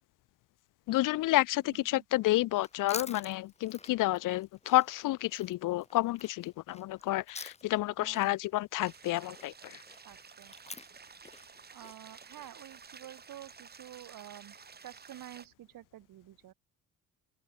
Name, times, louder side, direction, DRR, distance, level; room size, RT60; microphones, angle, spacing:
voice 1, 0.9-9.8, left 17 dB, 60° left, 0.5 m, -30 dB
voice 2, 1.7-2.0 8.0-8.3 10.0-10.6 11.7-14.6 14.8-16.5, right 13 dB, 65° right, 2.5 m, -50 dB
Chewing mastication, 2.5-7.9 8.1-12.5, left 3 dB, 20° left, 3.0 m, -48 dB
sound 1, 8.8-15.5, right 5 dB, 25° right, 1.5 m, -52 dB
open air
cardioid pair, 90°, 36 cm